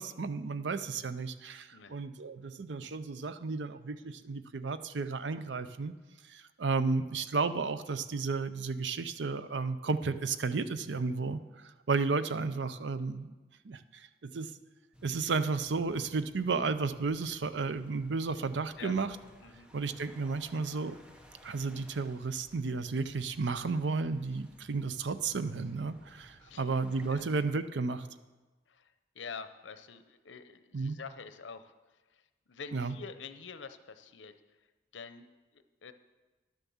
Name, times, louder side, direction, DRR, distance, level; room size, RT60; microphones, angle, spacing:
voice 1, 0.0-5.9 6.3-13.3 13.6-14.5 15.0-19.1 19.7-21.0 21.4-28.1 30.7-31.0 32.7-32.9, right 4 dB, 70° right, 12 dB, 0.6 m, -33 dB
sound 1, 14.9-27.5, equal, 5° right, 0.9 m, -58 dB
voice 2, 26.4-26.7 27.1-27.3 28.7-31.7 32.1-34.3 34.9-35.3 35.5-35.9, left 5 dB, 85° left, 10 dB, 0.7 m, -47 dB
11.0 x 7.2 x 7.1 m, 1.2 s
head